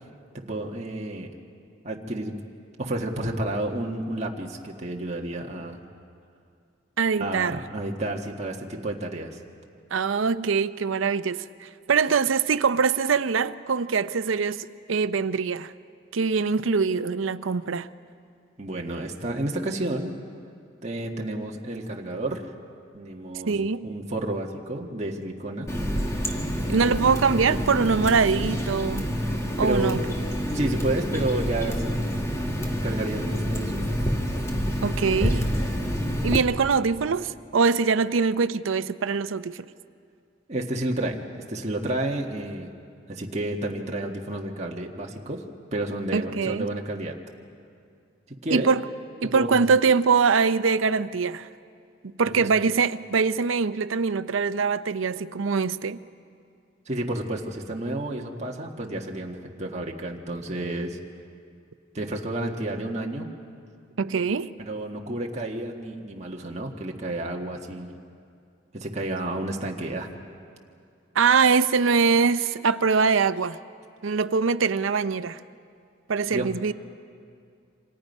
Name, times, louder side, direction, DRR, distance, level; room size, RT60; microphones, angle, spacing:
voice 1, 0.3-1.3 1.8-2.3 2.8-5.8 7.2-9.4 18.6-20.2 20.8-22.5 22.9-23.5 23.8-25.7 29.6-30.0 30.5-32.0 32.5-34.0 40.5-42.7 43.1-45.4 45.7-47.2 48.3-48.7 49.2-49.6 52.3-52.5 56.8-61.0 61.9-63.3 64.6-68.0 68.7-70.1 76.3-76.5, right 1 dB, 35° right, 1.5 m, -31 dB
voice 2, 7.0-7.6 9.9-15.7 16.1-17.9 23.5-23.9 26.7-29.1 29.6-30.0 34.8-35.4 36.2-39.6 46.1-46.7 48.5-48.8 49.2-51.5 52.2-56.0 64.0-64.5 71.2-73.6 74.0-75.4 76.1-76.7, right 5 dB, 90° right, 0.6 m, -23 dB
Water tap faucet, 25.7-36.4, equal, 15° left, 1.6 m, -27 dB
28.0 x 25.5 x 5.4 m
head